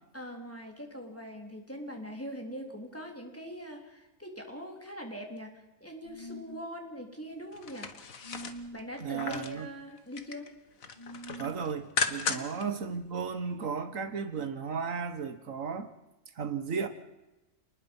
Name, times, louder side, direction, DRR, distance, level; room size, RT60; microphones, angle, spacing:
voice 1, 0.1-7.9 8.7-10.5 12.4-12.6, equal, 10° left, 2 dB, 3.7 m, -42 dB
sound 1, 6.0-6.7 8.2-8.8 11.0-11.5, equal, 40° right, 1.6 m, -45 dB
sound 2, 7.5-9.6 10.0-10.5 10.8-12.6 13.0-13.1, left 5 dB, 80° left, 1.9 m, -35 dB
voice 2, 9.0-9.7 11.4-15.9 16.3-16.9, right 6 dB, 75° right, 10 dB, 1.7 m, -34 dB
28.5 x 20.0 x 5.5 m, 1.0 s
omnidirectional pair, 1.4 m